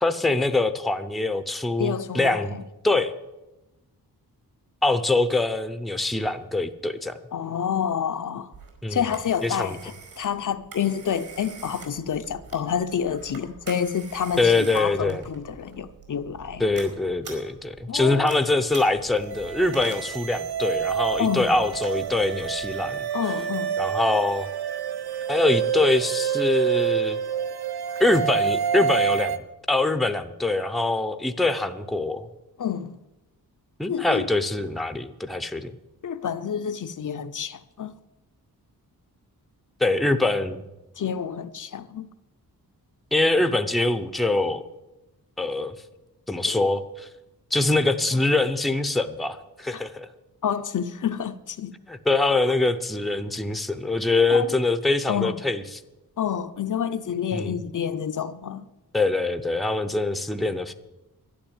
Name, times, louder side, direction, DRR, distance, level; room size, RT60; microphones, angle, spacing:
voice 1, 0.0-2.6 2.8-3.1 4.8-7.2 8.8-9.0 9.4-9.8 14.4-15.2 16.6-23.1 23.8-24.5 25.3-27.2 28.0-29.4 29.7-32.3 33.8-35.7 39.8-40.6 43.1-44.6 45.4-45.7 46.3-47.1 47.5-50.1 51.9-55.6 57.3-57.5 58.9-60.7, left 2 dB, ahead, 0.6 m, -24 dB
voice 2, 1.8-2.6 7.3-8.5 8.9-16.7 17.9-18.4 21.2-21.6 23.1-23.7 32.6-33.0 33.9-34.3 36.0-37.9 41.0-42.1 46.4-46.6 49.7-49.8 50.4-51.7 52.4-52.5 54.3-54.5 55.1-55.4 56.2-58.7, left 8 dB, 55° left, 0.6 m, -28 dB
Telephone, 8.5-22.8, right 4 dB, 65° right, 5.0 m, -45 dB
sound 1, 19.2-29.4, right 8 dB, 80° right, 0.9 m, -27 dB
12.0 x 11.0 x 8.8 m
wide cardioid pair, 150°, 37 cm